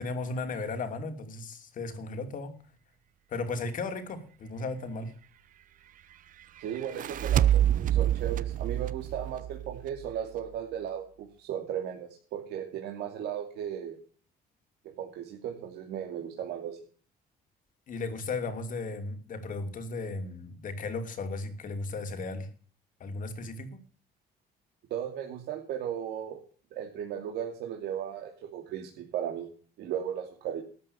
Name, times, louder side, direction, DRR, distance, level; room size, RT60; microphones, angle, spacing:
voice 1, 0.0-2.6 3.3-5.1 17.9-22.5 23.0-23.8, left 3 dB, 50° left, 2.9 m, -35 dB
voice 2, 6.6-14.0 14.8-16.8 24.9-26.4 26.7-29.5 29.8-30.6, right 9 dB, 80° right, 2.6 m, -36 dB
sound 1, 6.7-10.1, right 11 dB, 55° right, 0.8 m, -27 dB
13.0 x 8.7 x 7.1 m
cardioid pair, 110°, 17 cm